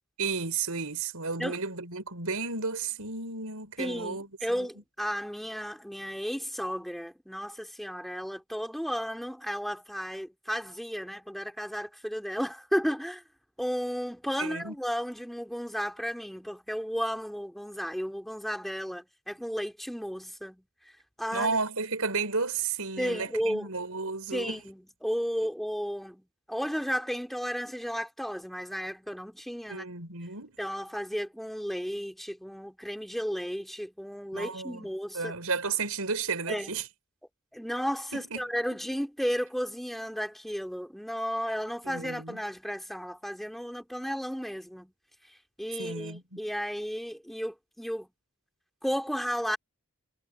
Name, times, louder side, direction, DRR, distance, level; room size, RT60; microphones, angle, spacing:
voice 1, 0.2-4.3 4.6-4.7 14.4-14.7 21.3-24.6 29.7-30.6 34.3-34.8 35.1-36.8 38.1-38.5 41.8-42.4 45.8-46.4, right 4 dB, 80° right, 5.4 m, -33 dB
voice 2, 3.8-13.2 13.6-20.6 21.2-21.6 23.0-23.7 24.3-29.9 30.6-35.4 36.5-36.7 37.5-44.9 45.6-48.1 48.8-49.6, equal, ahead, 3.5 m, -33 dB
head